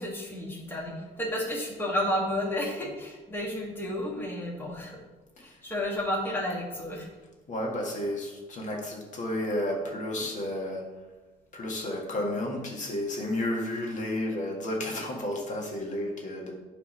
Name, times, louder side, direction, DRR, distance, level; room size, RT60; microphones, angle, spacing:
voice 1, 0.0-5.0 5.4-7.1, left 1 dB, 15° left, -2 dB, 1.6 m, -31 dB
voice 2, 7.5-10.8 11.5-16.5, left 1 dB, 45° left, 0 dB, 1.6 m, -32 dB
8.4 x 3.5 x 5.5 m, 1.2 s
cardioid pair, 110°, 17 cm